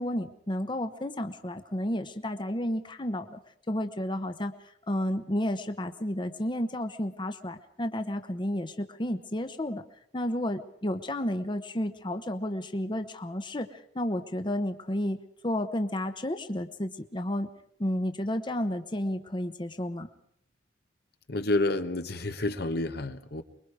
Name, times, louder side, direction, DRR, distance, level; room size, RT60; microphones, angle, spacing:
voice 1, 0.0-3.4 3.7-4.5 4.9-9.8 10.1-15.2 15.4-17.5 17.8-20.1, left 1 dB, 25° left, 8 dB, 1.0 m, -31 dB
voice 2, 21.3-23.4, left 2 dB, 65° left, 8 dB, 1.2 m, -29 dB
24.5 x 22.0 x 4.9 m, 0.69 s
head